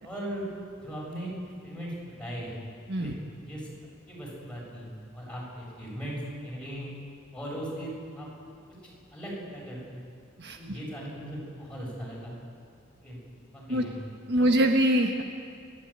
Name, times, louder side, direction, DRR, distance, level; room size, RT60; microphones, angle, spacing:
voice 1, 0.0-0.5 0.8-1.3 1.6-1.9 2.2-2.5 2.9-3.1 3.5-3.7 4.1-6.9 7.3-8.3 9.1-10.0 10.5-12.3 13.0-13.2 13.5-13.9 14.3-14.5, equal, 5° left, -5 dB, 7.8 m, -38 dB
voice 2, 10.4-10.8 13.7-13.8 14.3-15.2, right 1 dB, 55° right, 3 dB, 1.4 m, -24 dB
30.0 x 12.5 x 8.9 m, 2.3 s
head